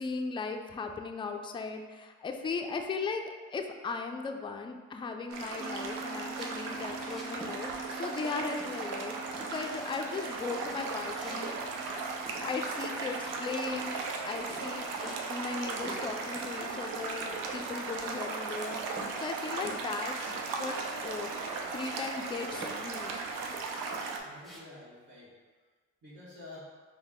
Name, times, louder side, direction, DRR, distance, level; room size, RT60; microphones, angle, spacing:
voice 1, 0.0-11.6 12.4-13.9 14.2-18.8 19.2-20.8 21.0-23.2, left 4 dB, 15° left, 4 dB, 0.3 m, -37 dB
sound 1, 5.3-24.2, right 4 dB, 85° right, 0.5 m, -37 dB
sound 2, 5.6-18.4, right 4 dB, 40° right, 0.7 m, -49 dB
sound 3, 6.3-7.6 7.9-8.3 8.6-9.1 9.3-10.1 10.4-13.4 13.7-14.2 14.5-15.6 15.9-16.5 16.8-18.2 18.5-20.8 21.1-21.2 21.5-22.1 22.5-23.2 23.7-24.6, equal, ahead, 0.8 m, -49 dB
voice 2, 24.2-25.7 26.0-26.7, left 2 dB, 60° right, -12 dB, 1.3 m, -50 dB
4.0 x 2.2 x 3.6 m, 1.4 s
supercardioid pair, 60°, 32 cm